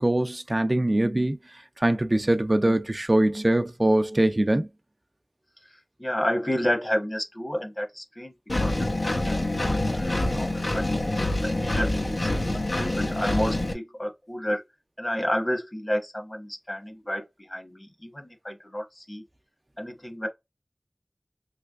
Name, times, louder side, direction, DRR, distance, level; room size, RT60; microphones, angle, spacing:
voice 1, 0.0-1.4 1.8-4.7, right 1 dB, 45° right, 0.4 m, -22 dB
voice 2, 6.0-8.3 8.6-10.9 11.2-12.3 12.8-14.6 15.0-19.2 19.8-20.3, equal, 40° left, 1.1 m, -31 dB
Engine, 8.5-13.7, left 1 dB, 85° left, 0.8 m, -26 dB
3.3 x 3.1 x 2.4 m
wide cardioid pair, 40°, 0 cm